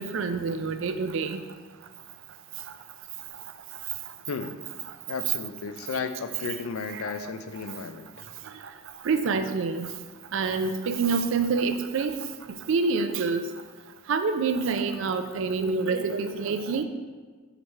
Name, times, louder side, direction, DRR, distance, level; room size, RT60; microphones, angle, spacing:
voice 1, 0.0-1.4 6.9-7.1 9.0-9.9 10.3-12.1 12.7-13.4 14.1-16.8, right 4 dB, 60° right, 9 dB, 0.4 m, -26 dB
voice 2, 4.3-4.6 5.1-8.1, left 5 dB, 75° left, 9 dB, 0.4 m, -34 dB
5.0 x 4.5 x 4.2 m, 1.4 s
head